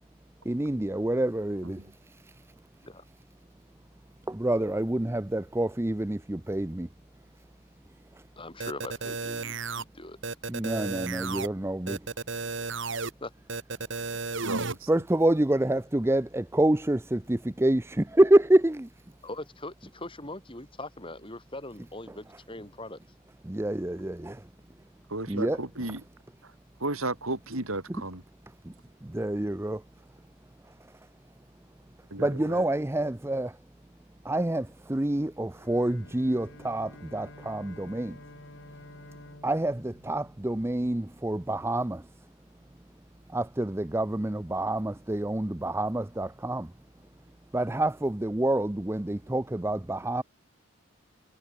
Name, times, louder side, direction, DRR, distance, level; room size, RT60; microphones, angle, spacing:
voice 1, 0.4-2.5 4.3-6.9 8.1-8.2 10.5-12.1 14.1-14.5 14.9-19.1 22.1-22.2 23.4-24.5 25.3-25.6 28.6-28.7 29.0-29.8 30.6-31.1 32.2-33.6 34.2-38.2 39.4-42.3 43.3-46.7 47.5-50.2, right 1 dB, 10° right, 0.5 m, -27 dB
voice 2, 8.4-10.2 13.2-13.3 19.2-23.0, left 2 dB, 25° left, 4.3 m, -41 dB
sound 1, 8.6-9.8 10.2-11.5 11.9-13.1 13.5-14.7, right 4 dB, 55° right, 1.9 m, -33 dB
voice 3, 14.4-14.9 25.1-26.0 26.4-26.5 26.8-28.2 32.1-32.6, right 2 dB, 70° right, 4.5 m, -34 dB
Bowed string instrument, 35.5-41.0, left 1 dB, 55° left, 3.9 m, -50 dB
head